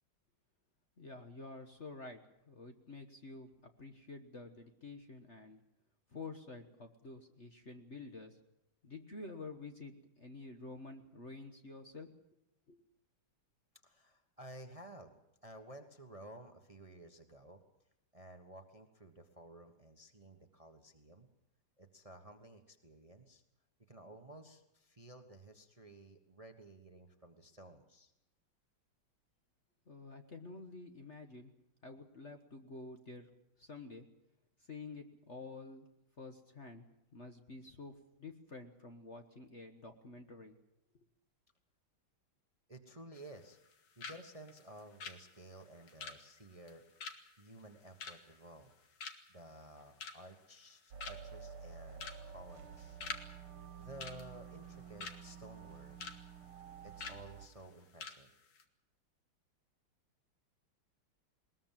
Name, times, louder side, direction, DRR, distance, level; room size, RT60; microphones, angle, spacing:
voice 1, 1.0-2.2 2.5-3.5 3.8-5.6 6.1-8.4 8.8-12.1 12.7-12.8 29.9-31.5 31.8-33.3 33.6-34.1 34.6-35.9 36.2-37.9 38.2-40.6, left 3 dB, 40° left, 6 dB, 1.4 m, -49 dB
voice 2, 13.8-17.6 18.1-21.3 21.8-23.4 23.9-28.1 42.7-43.6 44.0-46.8 47.4-48.7 49.3-53.0 53.8-56.0 56.8-58.3, right 1 dB, 20° right, 7 dB, 1.2 m, -54 dB
sound 1, 43.1-43.7 44.0-44.2 44.5-48.7 49.0-49.4 49.8-50.4 50.7-50.8 51.0-51.4 51.9-52.2 52.5-53.3 53.5-53.7 54.0-55.2 55.6-56.2 56.5-56.6 57.0-57.2 57.6-57.7 58.0-58.2 58.5-58.6, left 5 dB, 65° left, 2.4 m, -46 dB
sound 2, 50.9-57.5, right 7 dB, 80° right, 2.2 m, -51 dB
20.5 x 20.5 x 7.5 m, 0.83 s
omnidirectional pair, 2.3 m